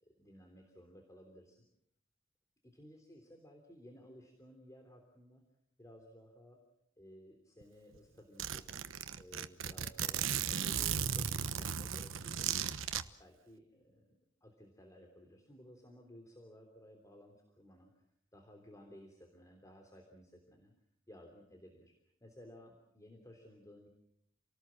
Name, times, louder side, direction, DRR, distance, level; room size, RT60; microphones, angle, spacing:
voice 1, 0.0-1.6 2.7-5.4 5.8-6.6 7.0-8.8 9.2-12.5 12.9-14.1 14.4-17.9 18.3-20.7 21.1-21.9 22.2-23.9, equal, 15° left, 3 dB, 3.3 m, -57 dB
Zipper (clothing), 7.6-7.7 7.9-8.0 8.4-13.0, right 8 dB, 80° right, 1.1 m, -36 dB
29.0 x 19.0 x 7.6 m, 0.77 s
head